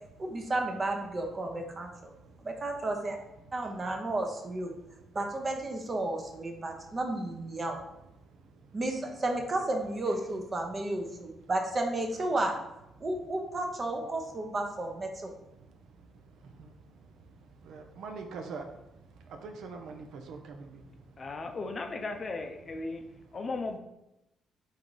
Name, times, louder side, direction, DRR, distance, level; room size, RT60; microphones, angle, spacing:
voice 1, 0.2-2.1 2.4-3.2 3.5-4.7 5.1-7.8 8.7-12.5 13.0-15.3, right 2 dB, 35° right, 0.8 m, -32 dB
voice 2, 17.7-18.6 19.4-20.7, right 4 dB, 75° right, 0.5 m, -42 dB
voice 3, 21.2-23.0 23.3-23.8, left 3 dB, 40° left, 0.5 m, -36 dB
3.7 x 2.7 x 4.7 m
cardioid pair, 90°, 0 cm